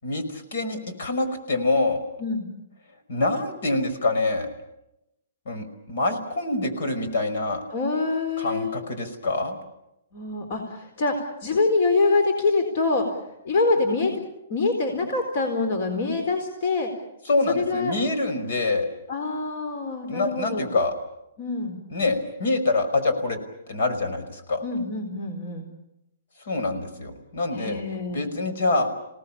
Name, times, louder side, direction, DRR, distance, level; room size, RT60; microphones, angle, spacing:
voice 1, 0.0-2.0 3.1-4.5 5.5-7.6 8.4-9.6 17.3-18.9 20.1-20.9 21.9-23.4 23.7-24.6 26.5-27.8 28.1-28.9, left 2 dB, 65° left, 8 dB, 5.3 m, -25 dB
voice 2, 7.7-8.7 10.1-14.2 14.5-16.9 17.5-18.0 19.1-20.7 21.4-21.8 24.6-25.7 27.5-28.3, left 3 dB, 45° left, 6 dB, 4.2 m, -25 dB
27.5 x 18.5 x 8.7 m, 0.86 s
hypercardioid pair, 160°, 0 cm